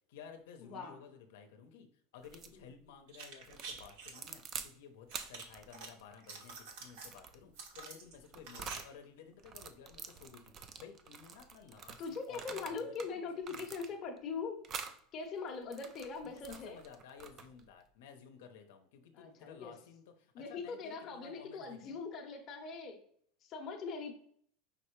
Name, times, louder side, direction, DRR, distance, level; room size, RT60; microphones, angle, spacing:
voice 1, 0.1-1.9 2.1-12.8 13.1-13.2 13.5-13.8 16.2-22.0, left 7 dB, 80° left, 6 dB, 0.7 m, -55 dB
voice 2, 0.6-0.9 2.5-2.6 12.0-14.6 15.1-16.8 19.1-19.7 20.3-23.0 23.4-24.1, left 5 dB, 30° left, 2 dB, 0.8 m, -41 dB
sound 1, 2.2-2.6 3.4-4.7 5.1-8.9 9.4-13.1 13.4-14.2 14.6-15.0 15.5-17.7, right 6 dB, 25° right, 0.4 m, -48 dB
sound 2, 3.1-4.3 5.1-5.9 6.2-7.1 7.5-8.8 9.0-9.1, right 5 dB, 65° right, 1.0 m, -48 dB
5.3 x 3.2 x 3.1 m, 0.62 s
supercardioid pair, 165°, 0 cm